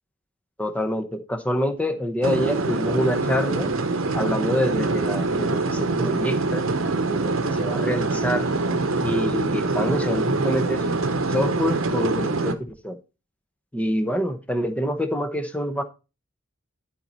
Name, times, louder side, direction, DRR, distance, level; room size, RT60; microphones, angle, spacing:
voice 1, 0.6-3.7 4.1-6.7 7.1-8.5 9.0-10.9 11.3-13.0 13.7-15.8, equal, 5° left, 0.8 m, -26 dB
sound 1, 2.2-12.5, right 3 dB, 75° right, 0.9 m, -24 dB
11.5 x 4.4 x 4.1 m
head